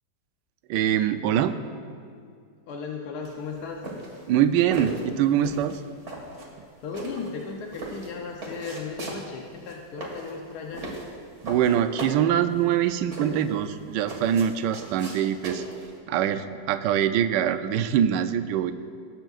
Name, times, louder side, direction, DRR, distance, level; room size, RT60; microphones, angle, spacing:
voice 1, 0.7-1.6 4.3-5.8 11.4-15.6 16.1-18.7, right 10 dB, 75° right, 10 dB, 1.2 m, -23 dB
voice 2, 2.7-3.8 6.6-10.9, left 5 dB, 65° left, 1 dB, 1.2 m, -36 dB
sound 1, 3.3-15.9, right 2 dB, 40° right, 2.0 m, -38 dB
19.5 x 8.9 x 2.4 m, 2.3 s
omnidirectional pair, 2.1 m